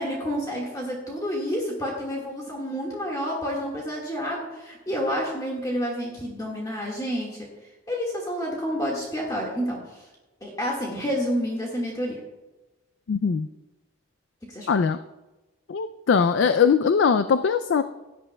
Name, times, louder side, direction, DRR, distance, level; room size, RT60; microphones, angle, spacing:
voice 1, 0.0-7.5 7.9-10.1 10.4-12.2 14.5-14.7, equal, 20° left, -3 dB, 1.7 m, -29 dB
voice 2, 13.1-13.5 14.7-15.0 15.7-17.8, left 6 dB, 65° left, 11 dB, 0.3 m, -21 dB
17.0 x 9.9 x 2.2 m, 1.1 s
head